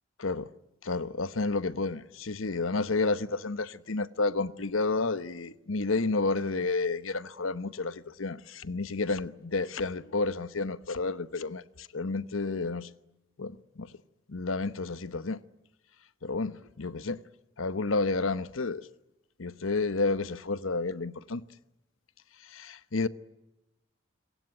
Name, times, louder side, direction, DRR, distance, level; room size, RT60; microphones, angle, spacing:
voice 1, 0.8-11.6 11.9-12.9 13.4-13.5 13.8-13.9 14.3-15.4 16.2-17.2 17.6-18.8 19.4-21.4 22.5-23.1, left 3 dB, 90° left, 1.1 m, -30 dB
27.0 x 23.5 x 9.0 m
head